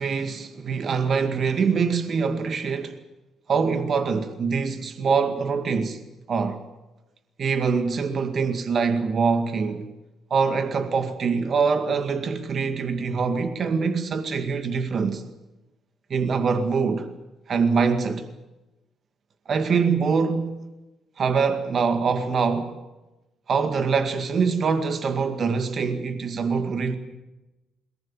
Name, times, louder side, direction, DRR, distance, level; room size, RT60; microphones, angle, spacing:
voice 1, 0.0-3.0 3.5-6.0 6.3-6.6 7.4-9.9 10.3-15.2 16.1-17.1 17.5-18.3 19.5-20.6 21.2-22.8 23.5-27.0, right 5 dB, 50° right, 2.0 m, -24 dB
21.5 x 19.5 x 8.9 m
cardioid pair, 90°, 0 cm